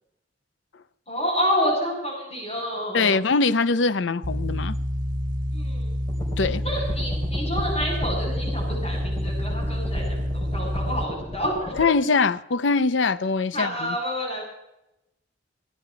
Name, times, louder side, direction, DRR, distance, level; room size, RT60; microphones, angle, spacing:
voice 1, 1.1-3.2 5.5-5.9 6.6-11.7 13.5-14.4, equal, 35° left, 7.6 m, -28 dB
voice 2, 2.9-4.8 6.4-6.6 11.7-14.0, left 4 dB, 85° left, 0.6 m, -22 dB
sound 1, 4.2-11.1, equal, 50° right, 1.4 m, -28 dB
sound 2, 6.1-11.8, equal, 15° left, 3.5 m, -35 dB
17.0 x 11.5 x 5.8 m
head